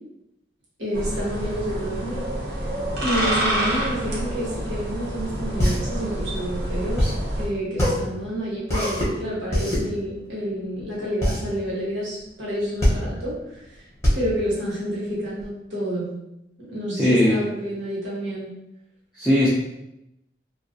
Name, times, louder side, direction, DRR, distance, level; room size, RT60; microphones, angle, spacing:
voice 1, 0.8-2.2 2.5-2.7 3.0-13.8 14.1-16.1 16.6-18.5, equal, 85° right, -7 dB, 1.1 m, -29 dB
sound 1, 0.9-7.5, right 1 dB, 65° right, 0.7 m, -28 dB
sound 2, 5.2-15.5, equal, 15° left, 0.7 m, -24 dB
voice 2, 17.0-17.4 19.2-19.5, left 1 dB, 5° right, -9 dB, 0.3 m, -18 dB
2.3 x 2.1 x 2.5 m, 0.86 s
head